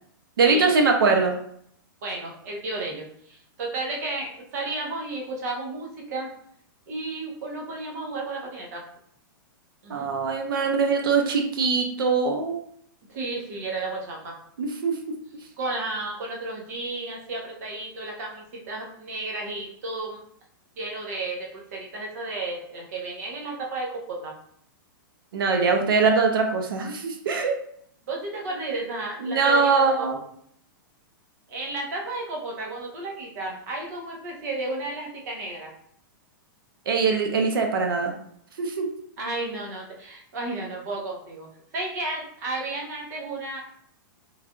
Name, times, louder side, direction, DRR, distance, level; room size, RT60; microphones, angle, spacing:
voice 1, 0.4-1.4 9.9-12.6 14.6-15.0 25.3-27.6 29.2-30.2 36.9-38.2 38.6-38.9, right 4 dB, 80° right, 3 dB, 0.6 m, -22 dB
voice 2, 2.0-6.3 6.9-8.8 9.8-10.2 13.1-14.3 15.6-20.2 20.8-24.3 28.1-30.1 31.5-35.7 39.2-41.5 41.7-43.6, right 2 dB, 50° right, -1 dB, 0.8 m, -33 dB
3.2 x 2.5 x 2.3 m, 0.66 s
supercardioid pair, 175°, 11 cm